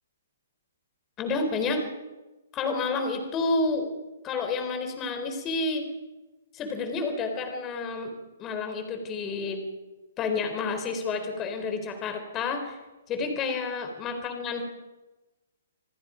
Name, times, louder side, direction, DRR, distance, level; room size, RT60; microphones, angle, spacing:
voice 1, 1.2-1.8 2.5-3.9 4.2-5.9 6.5-8.1 8.4-9.6 10.2-12.8 13.1-14.6, left 3 dB, 20° left, 6 dB, 4.3 m, -29 dB
28.0 x 19.0 x 5.2 m, 1.1 s
hypercardioid pair, 145°, 0 cm